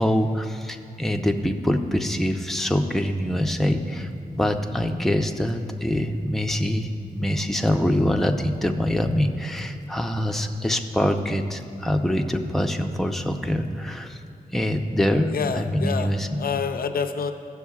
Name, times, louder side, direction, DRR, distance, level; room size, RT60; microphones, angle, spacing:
voice 1, 0.0-14.2 14.5-16.4, equal, ahead, 4 dB, 0.6 m, -24 dB
voice 2, 15.3-16.1 16.4-17.3, left 6 dB, 70° left, 7 dB, 0.5 m, -27 dB
15.5 x 6.4 x 2.3 m, 2.5 s
cardioid pair, 60°, 16 cm